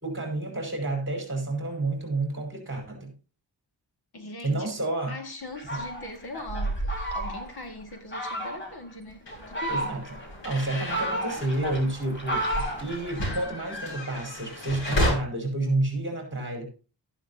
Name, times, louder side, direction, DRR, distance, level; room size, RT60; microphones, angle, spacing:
voice 1, 0.0-3.1 4.4-5.2 5.7-5.8 9.7-10.0 10.4-16.7, right 2 dB, 25° right, 3 dB, 5.1 m, -30 dB
voice 2, 4.1-4.7 5.1-10.0, left 2 dB, 55° left, 6 dB, 1.9 m, -40 dB
Fowl, 5.6-7.6 8.1-8.7 9.3-10.2 10.7-13.5, right 1 dB, 25° left, 3.3 m, -32 dB
sound 1, 9.3-15.1, equal, 70° left, 7.5 m, -33 dB
13.0 x 11.5 x 2.7 m, 0.34 s
wide cardioid pair, 135°, 45 cm